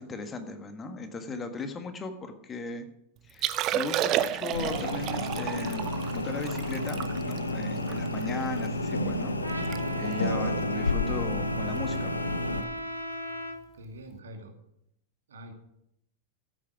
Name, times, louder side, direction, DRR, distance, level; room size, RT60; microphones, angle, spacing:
voice 1, 0.0-2.8 3.2-9.4 9.6-12.1, left 3 dB, 20° left, 7 dB, 1.6 m, -37 dB
Liquid, 3.3-8.7 9.1-9.2 9.5-9.8 10.1-10.3 10.9-11.1 12.6-12.7, right 12 dB, 35° right, 0.7 m, -31 dB
sound 1, 4.5-12.6, left 1 dB, 80° left, 1.0 m, -31 dB
Trumpet, 9.4-13.6, left 1 dB, 90° right, 1.9 m, -37 dB
voice 2, 13.7-14.5 15.3-15.5, equal, 65° right, 3 dB, 2.3 m, -44 dB
14.0 x 8.6 x 6.0 m, 0.77 s
figure-of-eight pair, 90°, 0 cm